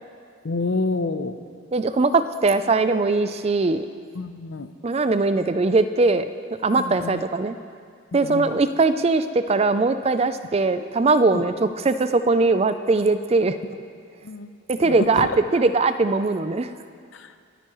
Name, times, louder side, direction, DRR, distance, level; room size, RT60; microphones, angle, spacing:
voice 1, 0.4-1.4 4.1-4.7 6.8-7.2 8.1-8.6 11.3-11.5 14.2-14.5 14.8-15.4 17.1-17.3, left 3 dB, 65° left, 10 dB, 0.6 m, -28 dB
voice 2, 1.7-3.9 4.8-6.2 6.6-7.6 8.1-13.6 14.7-16.7, right 3 dB, 30° right, 11 dB, 0.4 m, -20 dB
26.0 x 9.2 x 3.1 m, 2.2 s
head